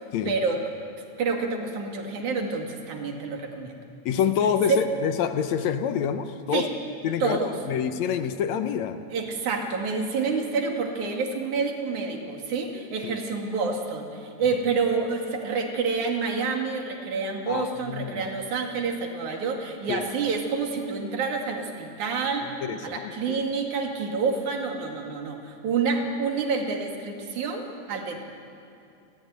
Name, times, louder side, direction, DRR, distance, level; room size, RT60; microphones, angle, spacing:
voice 1, 0.3-0.6 1.2-3.7 4.7-4.8 6.5-6.7 7.2-7.6 9.1-22.5 22.8-28.2, right 4 dB, 85° right, 2 dB, 3.7 m, -28 dB
voice 2, 4.1-6.7 7.0-7.4 7.7-9.0 13.0-13.2 17.5-18.2 19.9-20.1 22.4-23.4, left 8 dB, 75° left, 9 dB, 2.2 m, -27 dB
29.5 x 14.5 x 9.6 m, 2.6 s
omnidirectional pair, 3.4 m